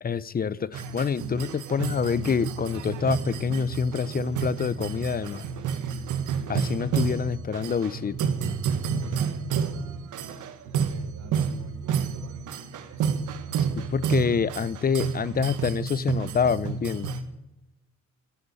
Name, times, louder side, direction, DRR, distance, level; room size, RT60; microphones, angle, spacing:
voice 1, 0.0-5.5 6.5-8.3 13.8-17.1, left 6 dB, 30° left, 19 dB, 0.7 m, -27 dB
sound 1, 0.7-17.2, right 7 dB, 80° right, 1.6 m, -30 dB
voice 2, 10.8-13.1, right 3 dB, 65° right, 1 dB, 6.1 m, -49 dB
14.5 x 9.4 x 8.5 m, 0.92 s
cardioid pair, 90°, 30 cm